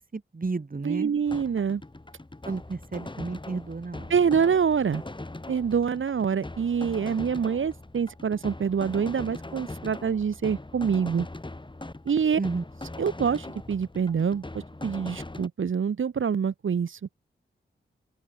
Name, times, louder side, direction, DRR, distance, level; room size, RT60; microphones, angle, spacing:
voice 1, 0.0-1.1 2.4-4.1 12.4-12.6, right 3 dB, 45° right, 7.8 m, -32 dB
voice 2, 0.8-1.8 4.1-5.0 5.5-11.3 12.1-12.4 13.0-17.0, right 6 dB, 75° right, 3.5 m, -26 dB
sound 1, 1.3-15.5, left 2 dB, 25° left, 5.1 m, -41 dB
open air
cardioid pair, 55°, 21 cm